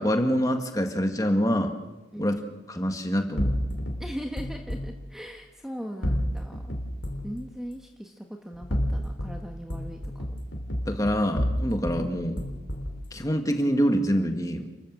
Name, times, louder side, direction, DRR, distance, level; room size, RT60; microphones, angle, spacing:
voice 1, 0.0-1.7 2.2-2.3 2.7-3.5 10.9-12.5 13.1-14.7, equal, 20° left, 5 dB, 1.9 m, -25 dB
sound 1, 3.4-4.9 6.0-7.3 8.5-9.4 9.7-12.0 12.4-13.0, equal, 65° left, 3.2 m, -29 dB
voice 2, 4.0-6.7 7.2-10.4, equal, ahead, 3 dB, 1.3 m, -39 dB
29.5 x 14.5 x 7.6 m, 1.1 s
head